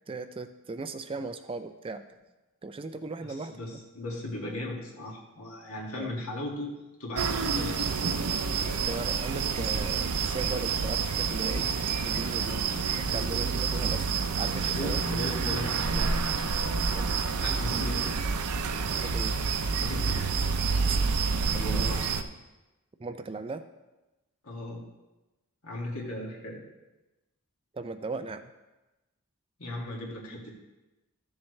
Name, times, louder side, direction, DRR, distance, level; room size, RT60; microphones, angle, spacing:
voice 1, 0.1-2.0 2.6-3.6 5.9-6.2 8.9-11.7 12.0-12.5 13.0-14.1 14.4-15.0 16.9-17.1 18.9-19.4 20.9-21.0 21.5-22.0 23.0-23.6 27.7-28.5, right 3 dB, 25° right, 9 dB, 0.4 m, -37 dB
voice 2, 3.2-7.9 12.1-12.6 13.0-13.3 14.7-16.4 17.3-18.2 19.8-20.3 21.6-22.2 24.4-24.8 25.6-26.6 29.6-30.5, left 1 dB, 70° left, -2 dB, 2.2 m, -37 dB
sound 1, 7.2-22.2, right 5 dB, 90° right, 0.6 m, -28 dB
13.5 x 7.2 x 3.3 m, 1.0 s
head